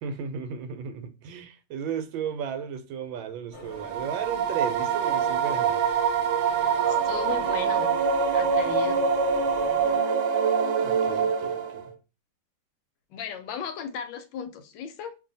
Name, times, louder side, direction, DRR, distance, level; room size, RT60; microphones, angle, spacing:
voice 1, 0.0-5.9 10.8-11.9, right 7 dB, 90° right, 1.3 m, -35 dB
sound 1, 3.5-10.0, left 1 dB, 50° left, 0.9 m, -45 dB
sound 2, 3.7-11.9, right 6 dB, 70° right, 1.1 m, -25 dB
voice 2, 6.6-7.9 8.3-9.1 13.1-15.1, left 7 dB, 80° left, 1.2 m, -36 dB
2.7 x 2.7 x 3.8 m
omnidirectional pair, 2.1 m